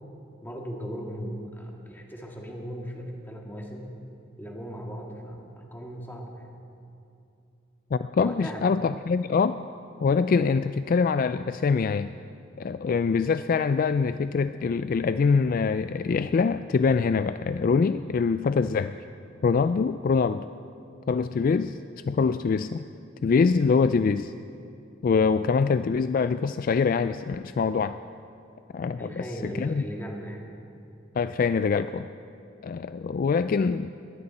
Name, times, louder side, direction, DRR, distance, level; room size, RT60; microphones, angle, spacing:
voice 1, 0.4-3.9 4.4-6.5 8.2-8.7 29.0-30.5, equal, 10° left, 0 dB, 1.9 m, -37 dB
voice 2, 7.9-9.6 10.0-12.1 12.6-19.0 19.4-20.5 21.1-21.8 22.1-22.9 23.2-24.3 25.0-28.0 28.7-29.8 31.2-32.1 32.6-33.9, left 5 dB, 45° left, 12 dB, 0.3 m, -24 dB
21.5 x 15.5 x 4.2 m, 2.6 s
head